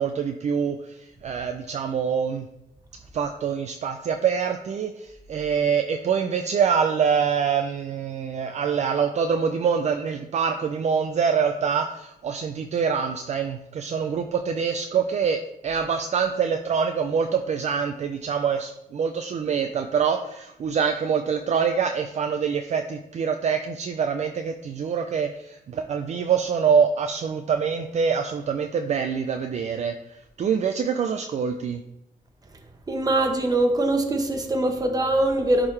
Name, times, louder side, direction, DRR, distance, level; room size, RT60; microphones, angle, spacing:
voice 1, 0.0-2.5 3.1-29.9 30.4-31.8, right 6 dB, 50° right, 6 dB, 0.4 m, -25 dB
voice 2, 32.9-35.7, right 1 dB, 25° right, 4 dB, 1.0 m, -22 dB
10.5 x 3.7 x 3.3 m, 0.84 s
wide cardioid pair, 130°, 15 cm